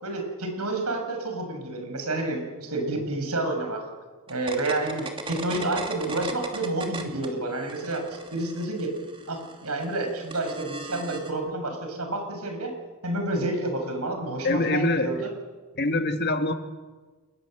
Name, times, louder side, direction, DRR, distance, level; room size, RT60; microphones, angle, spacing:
voice 1, 0.0-3.9 4.3-8.0 8.3-8.9 9.3-12.7 13.0-15.3, right 2 dB, 90° right, 4 dB, 6.9 m, -29 dB
sound 1, 4.3-7.3 7.6-11.3, right 3 dB, 25° right, 2.8 m, -38 dB
voice 2, 14.4-15.1 15.8-16.5, left 2 dB, 50° left, 7 dB, 1.8 m, -24 dB
29.0 x 20.5 x 7.9 m, 1.4 s
head